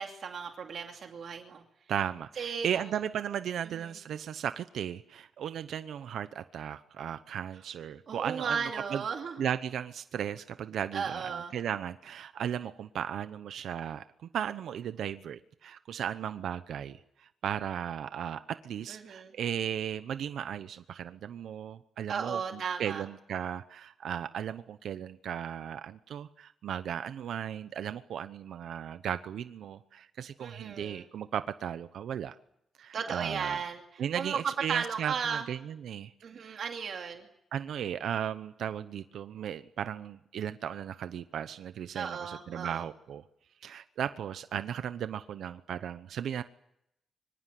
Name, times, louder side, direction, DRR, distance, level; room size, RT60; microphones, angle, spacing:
voice 1, 0.0-1.6 2.4-2.7 3.8-3.9 8.1-9.5 10.9-11.5 18.9-19.3 22.1-23.0 30.4-31.0 32.9-34.4 34.7-35.4 36.2-37.3 41.9-42.8, right 6 dB, 50° right, 3 dB, 2.6 m, -35 dB
voice 2, 1.9-9.0 9.4-14.0 14.3-32.3 32.8-33.6 34.0-36.1 36.4-36.6 37.5-43.2 43.6-46.4, right 9 dB, 70° right, 12 dB, 0.9 m, -36 dB
25.0 x 24.5 x 7.7 m, 0.78 s
wide cardioid pair, 175°, 0 cm